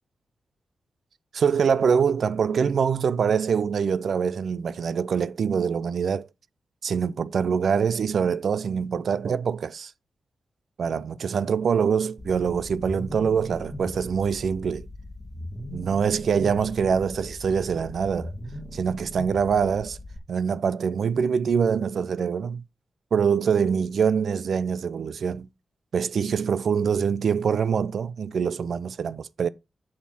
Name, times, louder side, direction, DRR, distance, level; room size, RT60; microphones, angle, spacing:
voice 1, 1.4-6.3 6.8-9.9 10.8-14.9 15.7-18.3 18.7-20.0 20.3-22.6 23.1-25.5 25.9-29.5, right 6 dB, 75° right, 0.5 m, -24 dB
sound 1, 12.2-20.2, left 1 dB, 10° left, 2.4 m, -39 dB
7.1 x 6.5 x 4.3 m
cardioid pair, 60°, 0 cm